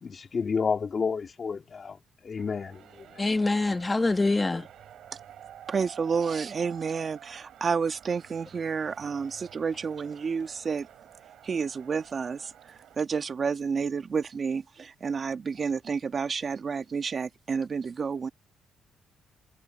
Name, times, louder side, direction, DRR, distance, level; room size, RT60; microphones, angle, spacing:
voice 1, 0.0-2.0 2.2-2.8, left 5 dB, 40° left, 2.2 m, -30 dB
sound 1, 2.4-13.0, right 10 dB, 70° right, 7.3 m, -50 dB
voice 2, 3.2-4.7, left 2 dB, 20° left, 2.2 m, -25 dB
voice 3, 5.7-10.9 11.4-12.5 13.0-18.3, right 5 dB, 45° right, 1.7 m, -30 dB
cardioid pair, 90°, 0 cm